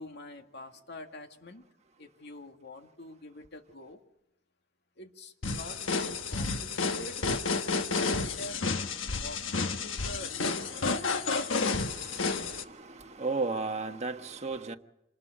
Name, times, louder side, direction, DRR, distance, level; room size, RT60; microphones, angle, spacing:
voice 1, 0.0-1.6 2.0-4.0 5.0-7.2 7.6-8.7 9.1-10.4 10.8-11.1, left 1 dB, 60° left, 2.2 m, -46 dB
sound 1, 5.4-12.6, left 4 dB, 75° left, 1.4 m, -31 dB
voice 2, 10.6-14.8, right 3 dB, 35° right, 1.3 m, -36 dB
27.0 x 20.0 x 5.1 m
head